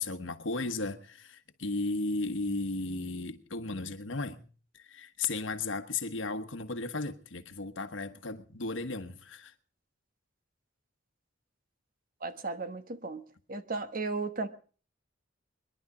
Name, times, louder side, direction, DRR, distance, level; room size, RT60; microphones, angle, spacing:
voice 1, 0.0-4.4 4.7-9.5, left 3 dB, 80° left, 1.3 m, -35 dB
voice 2, 12.2-13.2 13.5-14.5, right 3 dB, 50° right, 1.2 m, -35 dB
22.0 x 11.0 x 4.9 m
head